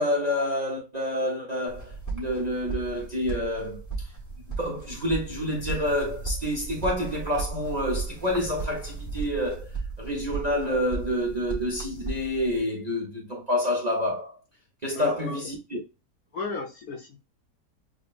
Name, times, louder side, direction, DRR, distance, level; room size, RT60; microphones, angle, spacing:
voice 1, 0.0-3.8 4.6-9.7 10.0-14.4 14.8-15.8, left 1 dB, 35° right, 0.6 m, -28 dB
sound 1, 1.7-12.6, right 4 dB, 15° left, 0.7 m, -36 dB
voice 2, 14.9-15.4 16.3-17.2, left 4 dB, 65° left, 1.2 m, -34 dB
6.1 x 2.1 x 2.4 m
omnidirectional pair, 1.8 m